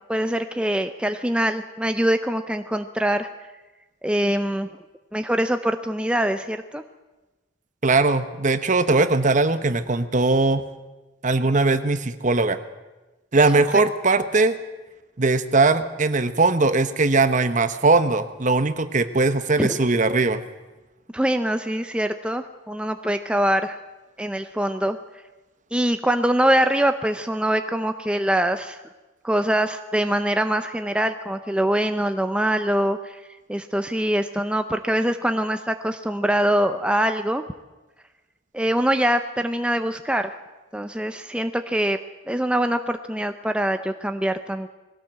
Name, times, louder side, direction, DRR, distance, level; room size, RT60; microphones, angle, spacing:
voice 1, 0.1-3.3 4.0-4.7 5.1-6.8 13.7-13.8 19.6-19.8 21.1-23.8 24.2-25.0 25.7-28.8 29.2-33.2 33.5-37.4 38.5-40.3 40.7-42.0 42.3-44.7, right 1 dB, 5° right, 7 dB, 0.6 m, -23 dB
voice 2, 7.8-10.6 11.2-12.6 13.3-14.6 15.2-20.4, right 3 dB, 40° right, 11 dB, 1.1 m, -20 dB
20.5 x 17.0 x 7.6 m, 1.1 s
head